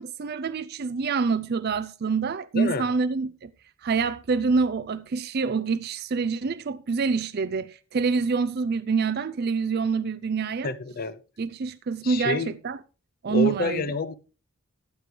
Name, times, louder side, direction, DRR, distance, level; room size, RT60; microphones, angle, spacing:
voice 1, 0.0-3.5 3.8-10.7 11.4-12.8 13.2-13.9, right 5 dB, 45° right, 0.4 m, -26 dB
voice 2, 2.5-2.9 10.6-11.2 12.0-12.5 13.3-14.1, left 3 dB, 45° left, 0.6 m, -28 dB
14.0 x 8.4 x 3.2 m
head